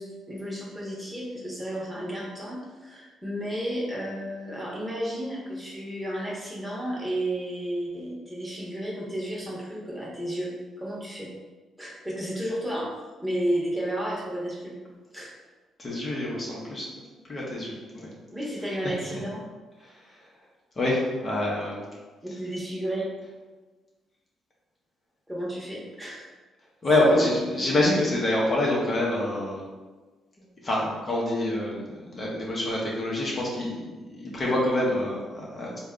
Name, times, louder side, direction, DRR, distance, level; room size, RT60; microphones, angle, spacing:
voice 1, 0.0-11.3 11.8-12.9 13.2-14.8 15.1-15.3 18.3-19.4 22.2-23.1 25.3-26.3 27.1-27.3, right 1 dB, 5° right, -5 dB, 1.1 m, -32 dB
voice 2, 15.8-18.1 18.8-18.9 19.8-20.3 20.8-21.9 26.8-29.6 30.4-35.8, left 1 dB, 35° left, -4 dB, 0.8 m, -26 dB
3.6 x 2.3 x 3.7 m, 1.3 s
cardioid pair, 90°, 0 cm